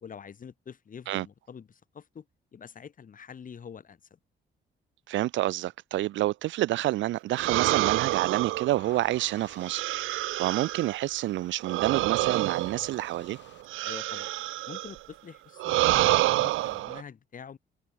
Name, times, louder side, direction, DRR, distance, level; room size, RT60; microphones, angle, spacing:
voice 1, 0.0-2.2 2.5-4.0 13.8-14.3 14.7-17.6, left 7 dB, 45° left, 1.6 m, -45 dB
voice 2, 5.1-9.8 10.1-13.4, right 15 dB, 70° right, 0.4 m, -28 dB
sound 1, 7.3-11.0 11.6-15.0 15.6-17.0, right 17 dB, 85° right, 0.8 m, -28 dB
sound 2, 7.5-13.6, left 10 dB, 65° left, 3.3 m, -57 dB
cardioid pair, 90°, 20 cm